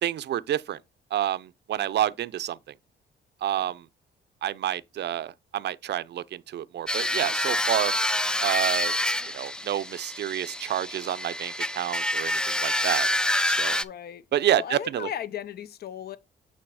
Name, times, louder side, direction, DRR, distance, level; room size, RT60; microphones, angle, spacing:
voice 1, 0.0-0.8 1.1-2.6 3.4-3.9 4.4-7.9 8.4-8.9 9.2-13.1 13.4-13.8 14.3-15.1, right 12 dB, 60° right, 0.5 m, -29 dB
sound 1, 6.9-13.8, left 1 dB, 5° left, 0.3 m, -27 dB
voice 2, 13.7-14.2 14.5-16.2, left 9 dB, 50° left, 0.6 m, -36 dB
8.7 x 3.0 x 4.8 m
cardioid pair, 90°, 20 cm